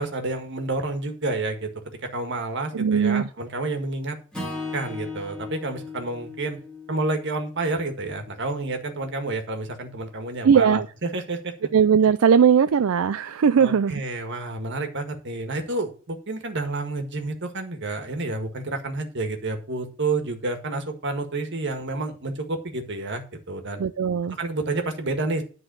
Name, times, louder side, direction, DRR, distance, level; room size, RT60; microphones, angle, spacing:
voice 1, 0.0-1.7 2.0-4.2 4.7-6.6 6.9-11.5 13.6-23.8 24.4-25.4, right 2 dB, 55° right, 5 dB, 1.7 m, -29 dB
voice 2, 2.7-3.3 10.4-10.9 11.7-14.0 23.8-24.4, right 7 dB, 75° right, 12 dB, 0.4 m, -19 dB
Acoustic guitar / Strum, 4.3-8.6, left 3 dB, 5° left, 3.0 m, -38 dB
10.5 x 4.0 x 6.9 m, 0.39 s
head